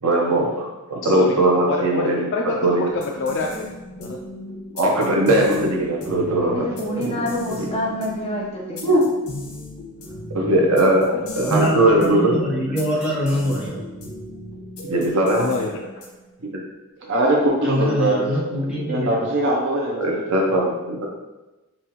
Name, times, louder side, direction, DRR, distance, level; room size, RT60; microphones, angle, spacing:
voice 1, 0.0-2.3 2.6-2.8 4.7-6.6 7.0-7.1 7.6-7.7 8.8-9.0 10.3-11.1 11.4-12.3 14.8-15.5 16.5-16.6 20.0-21.1, right 1 dB, 85° right, -1 dB, 0.9 m, -19 dB
voice 2, 1.0-1.4 1.6-3.7 4.0-4.2 11.1-11.2 15.3-15.9, left 3 dB, 55° left, 1 dB, 0.3 m, -26 dB
sound 1, 2.9-16.3, left 1 dB, 80° left, 1.0 m, -36 dB
voice 3, 6.4-9.0, left 1 dB, 25° left, -5 dB, 0.9 m, -27 dB
voice 4, 11.5-13.8 17.6-19.1, equal, 5° right, -7 dB, 1.0 m, -24 dB
voice 5, 17.0-20.2, right 1 dB, 55° right, -2 dB, 0.6 m, -22 dB
5.5 x 2.4 x 3.0 m, 1.1 s
head